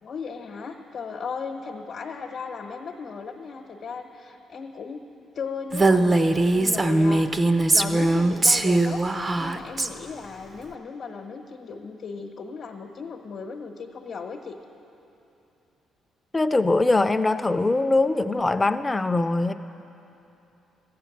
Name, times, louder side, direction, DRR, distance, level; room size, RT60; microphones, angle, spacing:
voice 1, 0.0-5.0 5.3-9.0 9.4-14.6, left 5 dB, 60° left, 1 dB, 0.9 m, -36 dB
Female speech woman speaking, 5.7-9.9, right 2 dB, 25° right, 0.5 m, -21 dB
voice 2, 16.3-19.5, left 2 dB, 20° left, 11 dB, 0.5 m, -22 dB
13.5 x 8.5 x 7.2 m, 2.8 s
cardioid pair, 90°, 0 cm